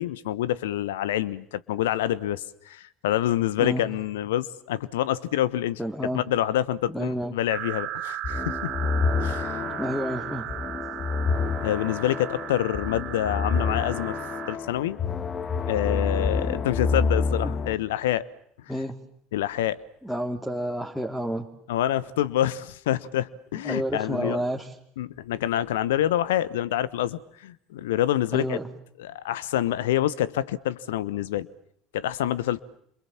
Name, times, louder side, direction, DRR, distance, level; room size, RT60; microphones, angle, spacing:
voice 1, 0.0-5.8 6.1-8.7 9.2-9.7 11.6-14.2 14.5-15.0 15.7-18.2 19.3-19.8 21.7-24.4 25.0-28.6 29.0-31.5 31.9-32.6, left 12 dB, 70° left, 19 dB, 1.1 m, -27 dB
voice 2, 5.8-6.2 6.9-7.3 9.8-10.5 17.4-17.6 18.7-19.0 20.0-21.5 23.6-24.7 28.3-28.7, equal, ahead, 3 dB, 2.8 m, -30 dB
sound 1, 7.5-14.6, right 14 dB, 55° right, 2.8 m, -36 dB
sound 2, 8.2-17.8, left 4 dB, 35° left, 1.7 m, -28 dB
29.0 x 27.0 x 7.3 m, 0.68 s
figure-of-eight pair, 65°, 0 cm